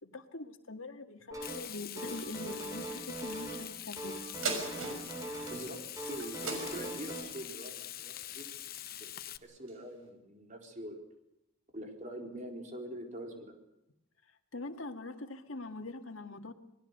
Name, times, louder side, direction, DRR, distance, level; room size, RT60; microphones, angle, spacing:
voice 1, 0.0-4.3 14.5-16.5, left 2 dB, 80° left, 6 dB, 2.0 m, -43 dB
sound 1, 1.3-1.7 2.0-3.7 4.0-5.7 6.0-7.2, right 2 dB, 15° right, 8.0 m, -41 dB
Frying (food), 1.4-9.4, left 12 dB, 45° left, 0.9 m, -44 dB
sound 2, 4.4-9.2 9.7-9.8, right 3 dB, 90° right, 6.2 m, -41 dB
voice 2, 5.5-5.8 6.1-9.1 9.4-11.0 11.7-13.6, right 1 dB, 35° right, 2 dB, 4.2 m, -44 dB
27.0 x 20.0 x 6.7 m, 0.87 s
head